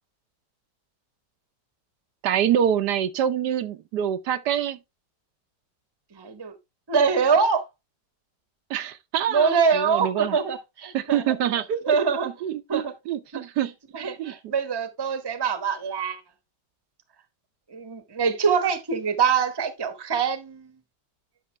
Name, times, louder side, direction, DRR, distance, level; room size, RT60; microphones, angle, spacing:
voice 1, 2.2-4.8 8.7-10.4 10.9-13.7 14.2-14.3, right 10 dB, 75° right, 1.3 m, -26 dB
voice 2, 6.1-6.5 6.9-7.6 9.3-11.3 11.9-12.3 12.7-12.9 13.3-13.4 13.9-16.2 17.7-20.7, right 6 dB, 20° right, 0.8 m, -24 dB
10.5 x 5.5 x 3.2 m
omnidirectional pair, 1.9 m